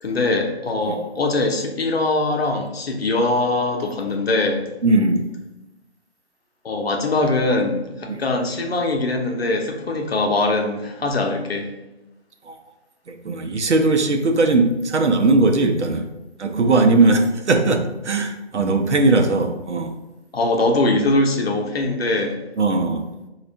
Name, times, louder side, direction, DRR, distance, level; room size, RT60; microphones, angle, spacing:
voice 1, 0.0-4.7 6.6-11.7 20.3-22.4, left 2 dB, 65° left, 3 dB, 0.7 m, -22 dB
voice 2, 4.8-5.3 8.1-8.2 12.5-12.6 13.1-16.1 16.4-19.9 22.6-23.0, right 3 dB, 80° right, 5 dB, 0.6 m, -19 dB
4.1 x 2.4 x 3.2 m, 0.99 s
figure-of-eight pair, 145°, 34 cm